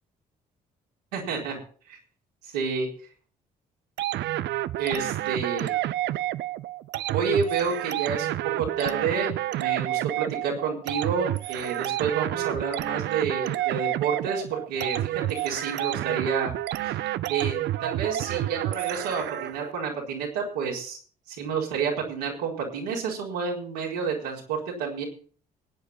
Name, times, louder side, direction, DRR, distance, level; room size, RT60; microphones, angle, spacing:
voice 1, 1.1-1.6 1.9-2.0 2.4-2.9 4.8-5.7 7.1-15.1 15.4-16.5 16.8-17.0 17.3-21.0 21.3-25.0, right 5 dB, 80° right, -2 dB, 4.3 m, -29 dB
sound 1, 4.0-19.7, right 14 dB, 60° right, 0.6 m, -29 dB
18.0 x 9.9 x 4.3 m, 0.43 s
figure-of-eight pair, 45°, 21 cm